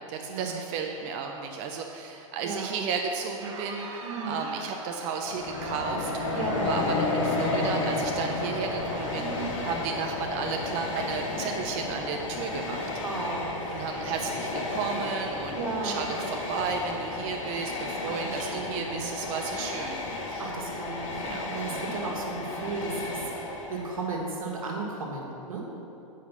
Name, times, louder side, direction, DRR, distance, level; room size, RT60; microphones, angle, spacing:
voice 1, 0.1-12.9 13.7-20.5 21.2-21.4 21.7-21.9, right 5 dB, 45° right, 3 dB, 0.7 m, -33 dB
Crowd, 3.2-10.7, right 4 dB, 60° right, 1.0 m, -42 dB
voice 2, 4.0-4.5 6.3-6.8 9.2-9.5 13.0-13.9 15.5-16.2 18.1-19.0 20.4-23.2 23.7-25.6, right 3 dB, 90° right, -1 dB, 1.6 m, -35 dB
Train, 5.2-24.1, left 2 dB, 70° left, 1.4 m, -32 dB
8.9 x 5.0 x 5.4 m, 2.9 s
hypercardioid pair, 115°, 17 cm